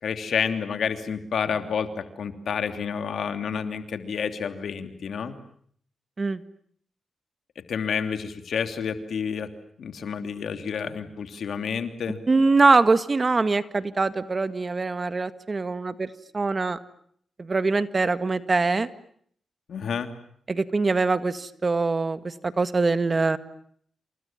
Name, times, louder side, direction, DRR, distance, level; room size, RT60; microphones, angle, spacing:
voice 1, 0.0-5.4 7.7-9.5 9.8-12.2 19.7-20.1, left 6 dB, 75° left, 8 dB, 3.0 m, -29 dB
voice 2, 12.3-16.8 17.4-18.9 20.5-23.4, right 3 dB, 40° right, 12 dB, 1.9 m, -23 dB
29.0 x 27.5 x 7.4 m, 0.63 s
cardioid pair, 60°, 0 cm